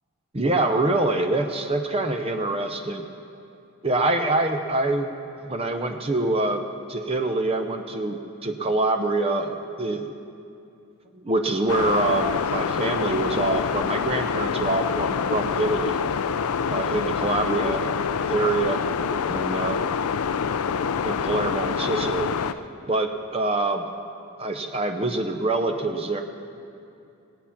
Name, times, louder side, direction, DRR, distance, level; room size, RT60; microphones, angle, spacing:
voice 1, 0.3-3.1 3.8-5.1 5.3-6.6 6.9-10.1 11.2-16.0 16.7-18.8 19.3-19.9 21.0-22.3 22.9-23.9 24.4-26.2, right 2 dB, 25° right, 6 dB, 0.6 m, -25 dB
sound 1, 11.7-22.5, left 6 dB, 85° left, 0.4 m, -26 dB
19.0 x 8.4 x 5.8 m, 2.6 s
head